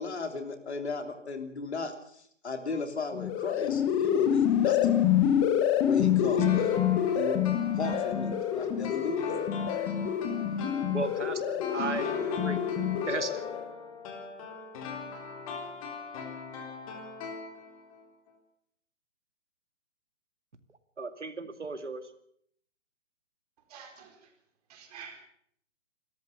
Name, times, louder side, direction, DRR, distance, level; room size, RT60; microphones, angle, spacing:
voice 1, 0.0-5.0 5.8-6.8 7.1-7.4 7.8-9.4, left 3 dB, 65° left, 6 dB, 3.3 m, -35 dB
sound 1, 3.1-13.7, left 9 dB, 10° left, 0.9 m, -27 dB
sound 2, 6.4-18.0 18.3-18.4, left 4 dB, 30° left, 3.7 m, -40 dB
voice 2, 10.9-12.6 13.1-13.4 21.0-22.0, right 4 dB, 75° right, 9 dB, 2.4 m, -35 dB
voice 3, 11.7-12.3 23.7-24.3 24.7-25.2, right 7 dB, 35° right, 3 dB, 4.5 m, -47 dB
27.0 x 13.5 x 7.1 m, 0.66 s
figure-of-eight pair, 135°, 36 cm